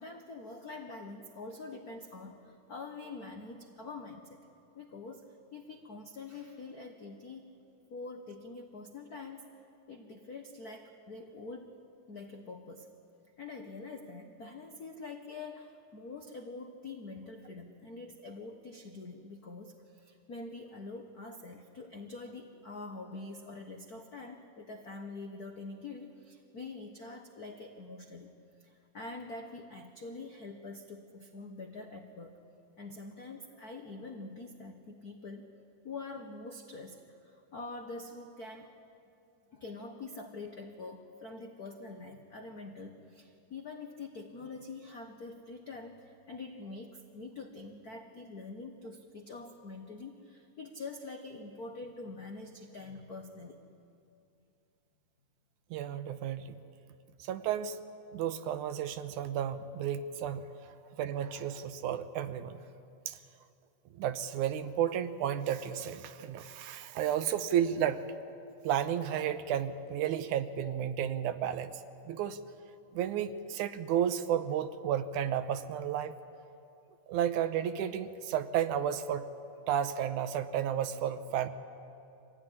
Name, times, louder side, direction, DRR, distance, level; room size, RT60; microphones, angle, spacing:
voice 1, 0.0-4.4 4.7-7.5 7.9-9.5 9.9-11.7 12.1-12.9 13.4-28.3 28.6-32.4 32.8-35.5 35.8-38.7 39.5-53.6, left 3 dB, 80° left, 3 dB, 0.8 m, -45 dB
voice 2, 55.7-56.6 57.2-57.8 58.1-60.5 61.0-62.6 63.1-63.2 64.0-68.0 68.6-71.8 72.1-72.4 72.9-76.1 77.1-79.2 79.7-81.5, right 9 dB, 80° right, 11 dB, 2.2 m, -32 dB
25.0 x 16.5 x 10.0 m, 2.6 s
omnidirectional pair, 3.6 m